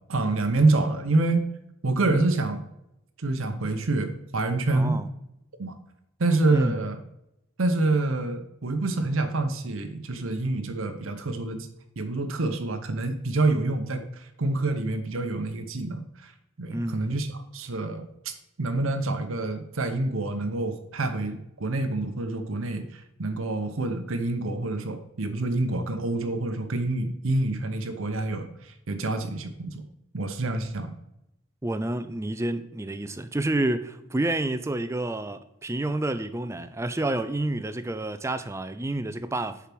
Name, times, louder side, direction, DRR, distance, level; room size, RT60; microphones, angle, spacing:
voice 1, 0.1-1.4 1.8-2.6 3.2-5.0 5.6-5.7 6.2-7.0 7.6-11.7 12.0-16.3 16.6-17.3 17.5-18.3 18.6-29.8 30.1-30.9, right 2 dB, 70° right, 0.8 m, -27 dB
voice 2, 4.7-5.1 6.5-6.8 16.7-17.2 31.6-39.6, right 1 dB, 15° right, 0.4 m, -29 dB
6.8 x 4.8 x 5.9 m
head